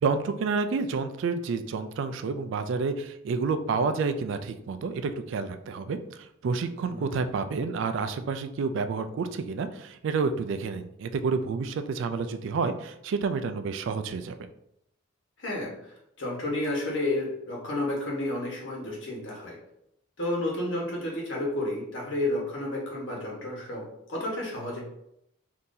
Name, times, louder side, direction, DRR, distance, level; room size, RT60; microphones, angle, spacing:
voice 1, 0.0-14.3, right 4 dB, 65° right, 9 dB, 0.3 m, -29 dB
voice 2, 15.4-19.6 20.2-24.8, left 1 dB, 65° left, -3 dB, 1.2 m, -31 dB
3.8 x 2.7 x 2.6 m, 0.77 s
head